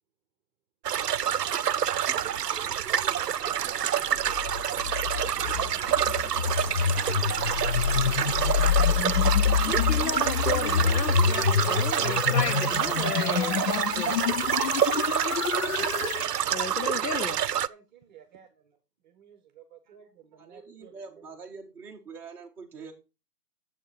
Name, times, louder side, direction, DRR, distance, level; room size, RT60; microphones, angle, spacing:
sound 1, 0.8-17.7, right 9 dB, 80° right, 0.6 m, -27 dB
sound 2, 4.1-16.3, left 7 dB, 60° left, 0.7 m, -27 dB
sound 3, 7.5-13.4, right 1 dB, 25° left, 2.9 m, -47 dB
voice 1, 9.7-14.2 15.8-15.9 16.5-17.4, left 5 dB, 90° left, 0.9 m, -34 dB
voice 2, 17.6-18.8 19.0-20.9, right 8 dB, 30° right, 1.0 m, -54 dB
voice 3, 20.4-22.9, right 5 dB, 5° right, 0.9 m, -44 dB
9.0 x 7.5 x 4.9 m
figure-of-eight pair, 140°, 47 cm